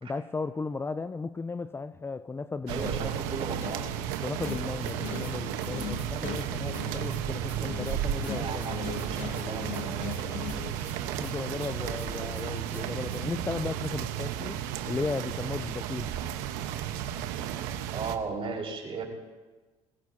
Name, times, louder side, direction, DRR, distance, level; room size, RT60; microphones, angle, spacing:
voice 1, 0.0-3.1 4.2-8.7 11.0-14.6 14.9-16.1, left 4 dB, 15° left, 0.4 m, -35 dB
voice 2, 2.7-3.9 8.2-10.5 17.9-19.0, right 4 dB, 40° right, 5.0 m, -36 dB
sound 1, 2.7-18.2, right 10 dB, 75° right, 1.1 m, -34 dB
sound 2, 2.8-10.8, left 12 dB, 65° left, 0.9 m, -41 dB
sampled hip hop drum loop, 3.9-4.2 4.5-6.9 7.1-7.2 7.5-9.8 10.1-10.2 10.5-13.2, right 3 dB, 15° right, 4.6 m, -46 dB
23.0 x 16.0 x 2.8 m
hypercardioid pair, 75°, 15 cm